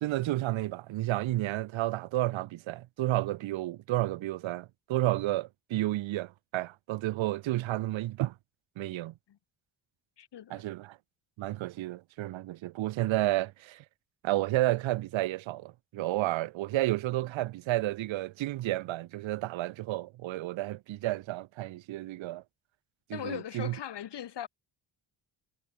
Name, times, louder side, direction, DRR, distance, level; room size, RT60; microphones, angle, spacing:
voice 1, 0.0-8.3 8.8-9.1 10.5-11.0 11.4-13.8 14.2-22.4 23.1-23.7, right 16 dB, 70° right, 0.5 m, -31 dB
voice 2, 10.2-10.6 23.1-24.5, left 10 dB, 60° left, 1.1 m, -39 dB
wide cardioid pair, 140°, 48 cm